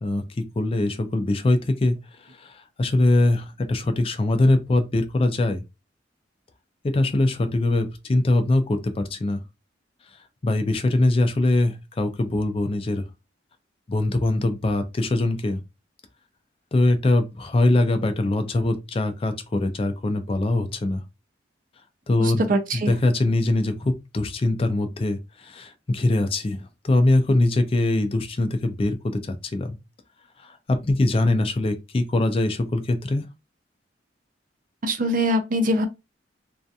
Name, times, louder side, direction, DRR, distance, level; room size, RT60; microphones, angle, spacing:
voice 1, 0.0-2.0 2.4-5.6 6.9-9.4 10.4-13.0 13.9-15.6 16.7-21.0 22.1-22.4 22.7-29.8 30.7-33.2, left 2 dB, 30° left, 0.4 m, -22 dB
voice 2, 22.2-22.9 34.8-35.9, equal, 45° right, 0.5 m, -23 dB
2.4 x 2.2 x 2.6 m
head